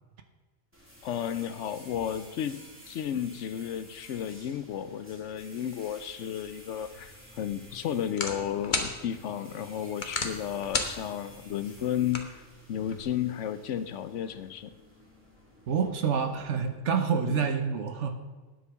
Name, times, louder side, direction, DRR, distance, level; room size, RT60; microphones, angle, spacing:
sound 1, 0.7-16.8, equal, 10° right, 3.1 m, -53 dB
voice 1, 1.0-12.3 12.7-14.7 17.3-17.4, left 9 dB, 80° left, 12 dB, 1.0 m, -33 dB
sound 2, 6.9-13.0, left 3 dB, 40° left, 1.4 m, -37 dB
voice 2, 15.7-18.2, right 6 dB, 80° right, 7 dB, 1.3 m, -27 dB
9.8 x 8.2 x 7.0 m, 1.3 s
omnidirectional pair, 1.2 m